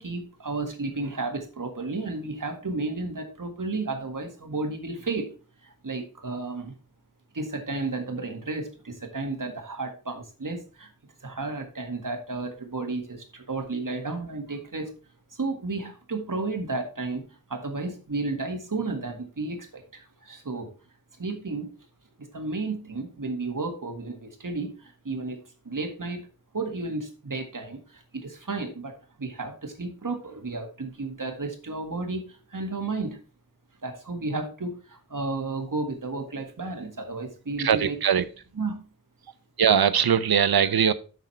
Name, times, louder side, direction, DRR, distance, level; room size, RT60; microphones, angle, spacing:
voice 1, 0.0-5.3 5.8-6.7 7.3-10.9 11.2-14.9 15.4-17.2 17.5-20.7 21.2-21.7 22.3-25.4 25.7-26.2 26.5-27.8 28.1-28.9 29.2-33.2 33.8-38.0 38.6-38.8, right 3 dB, 60° right, 4 dB, 1.9 m, -32 dB
voice 2, 37.6-38.2 39.6-40.9, right 8 dB, 85° right, 15 dB, 0.7 m, -21 dB
7.8 x 6.3 x 4.2 m, 0.35 s
wide cardioid pair, 55°, 36 cm